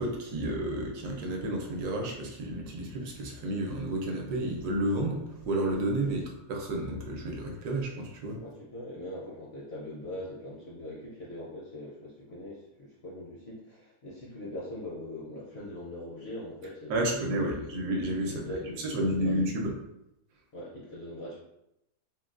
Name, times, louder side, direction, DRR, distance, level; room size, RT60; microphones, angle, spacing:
voice 1, 0.0-8.4 16.9-19.7, right 1 dB, 75° right, 1 dB, 1.1 m, -31 dB
voice 2, 8.4-17.7 18.2-19.4 20.5-21.4, left 1 dB, 60° left, -6 dB, 0.6 m, -42 dB
3.8 x 2.2 x 2.4 m, 0.85 s
omnidirectional pair, 1.7 m